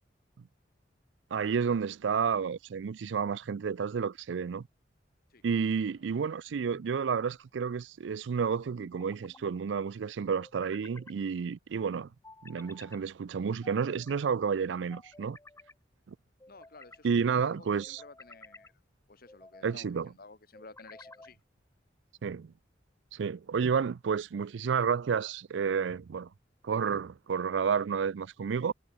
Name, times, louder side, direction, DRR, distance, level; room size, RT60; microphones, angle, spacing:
voice 1, 1.3-4.6 5.4-12.1 12.4-15.4 16.1-16.2 17.0-18.0 19.6-20.1 22.2-22.5 23.1-26.3 26.6-28.7, right 6 dB, 80° right, 0.4 m, -31 dB
sound 1, 6.7-7.4 8.8-9.5 10.4-11.2 12.2-13.0 13.6-14.3 14.9-15.7 16.4-17.1 17.8-18.7 19.3-19.8 20.5-21.4, left 2 dB, 15° left, 4.0 m, -53 dB
voice 2, 16.5-18.7 19.1-21.4, left 3 dB, 55° left, 1.8 m, -53 dB
head